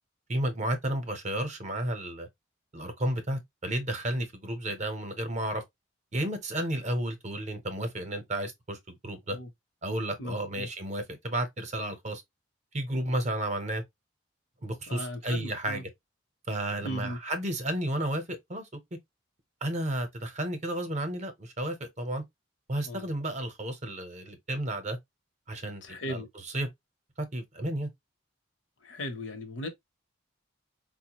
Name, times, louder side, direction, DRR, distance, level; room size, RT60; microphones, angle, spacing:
voice 1, 0.3-2.3 2.7-5.6 6.1-9.4 9.8-12.2 12.7-13.8 14.6-15.9 16.5-18.7 19.6-22.2 22.7-25.0 25.5-26.2 26.5-26.7 27.2-27.9, right 1 dB, 35° right, 0.7 m, -32 dB
voice 2, 10.2-10.7 14.9-15.8 16.8-17.2 22.8-23.1 25.8-26.3 28.8-29.7, left 1 dB, 65° left, 0.8 m, -37 dB
4.6 x 2.1 x 2.9 m
head